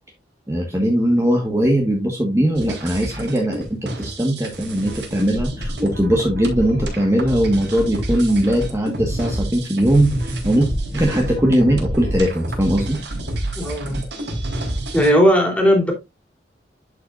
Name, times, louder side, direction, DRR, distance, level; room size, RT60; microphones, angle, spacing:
voice 1, 0.5-10.7 10.9-13.0, right 1 dB, 15° right, 1.4 m, -19 dB
sound 1, 2.5-15.1, right 1 dB, 85° right, 3.6 m, -28 dB
voice 2, 13.5-14.0 14.9-15.9, equal, 5° left, 2.9 m, -16 dB
11.0 x 5.7 x 2.5 m
head